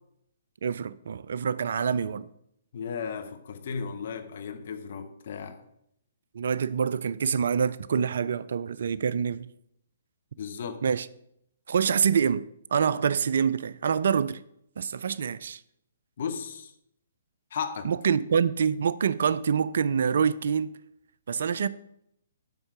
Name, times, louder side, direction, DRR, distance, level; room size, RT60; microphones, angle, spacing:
voice 1, 0.6-2.3 6.3-9.5 10.8-11.1 11.7-14.4 14.8-15.6 17.8-20.7 21.3-21.7, right 7 dB, 55° right, 0.3 m, -26 dB
voice 2, 2.7-5.6 10.4-10.8 16.2-16.7 17.5-17.9, left 6 dB, 50° left, 0.9 m, -35 dB
7.8 x 5.4 x 5.7 m
figure-of-eight pair, 125°, 0 cm